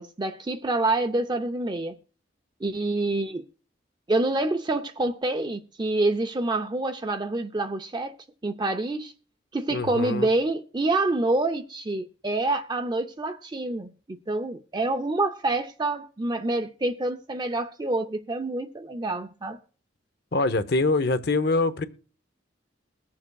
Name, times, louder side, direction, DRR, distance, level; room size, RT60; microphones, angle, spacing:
voice 1, 0.0-2.0 2.6-3.4 4.1-8.1 8.4-9.1 9.5-19.6, right 2 dB, 25° right, 0.5 m, -27 dB
voice 2, 9.7-10.3 20.3-21.8, left 3 dB, 60° left, 0.7 m, -24 dB
22.0 x 7.4 x 2.3 m
head